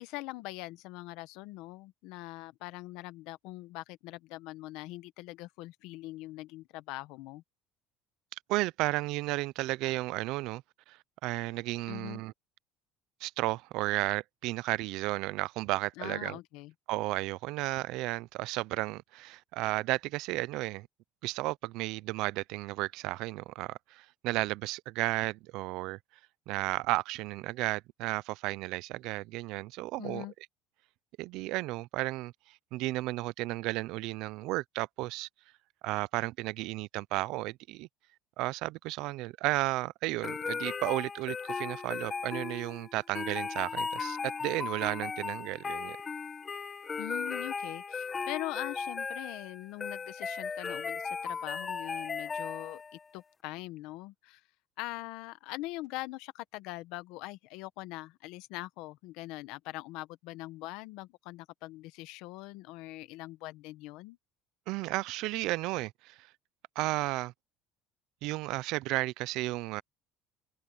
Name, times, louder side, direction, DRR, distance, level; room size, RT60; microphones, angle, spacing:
voice 1, 0.0-7.4 11.9-12.2 16.0-16.7 30.0-30.3 47.0-52.8 53.1-54.4 54.8-64.2, left 19 dB, 65° left, 1.0 m, -42 dB
voice 2, 8.5-10.6 10.9-12.3 13.2-16.4 16.9-20.9 21.2-26.0 26.5-30.3 31.2-35.3 35.8-37.9 38.4-46.0 64.7-66.3 66.8-67.3 68.2-69.8, right 20 dB, 60° right, 0.4 m, -33 dB
sound 1, 40.2-53.0, left 5 dB, 20° left, 1.5 m, -37 dB
cardioid pair, 180°, 0 cm